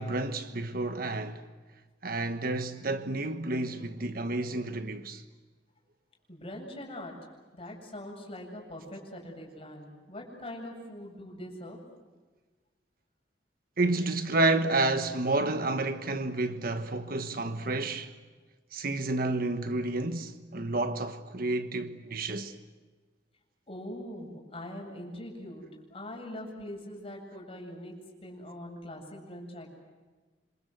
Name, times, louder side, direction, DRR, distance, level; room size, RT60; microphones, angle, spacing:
voice 1, 0.0-1.4 2.0-5.2 13.8-18.1 18.7-22.5, right 2 dB, 55° right, 1.4 m, -30 dB
voice 2, 6.3-7.2 7.5-11.8 23.7-28.0 28.2-29.7, left 1 dB, 35° left, 7.9 m, -42 dB
27.5 x 26.5 x 8.0 m
head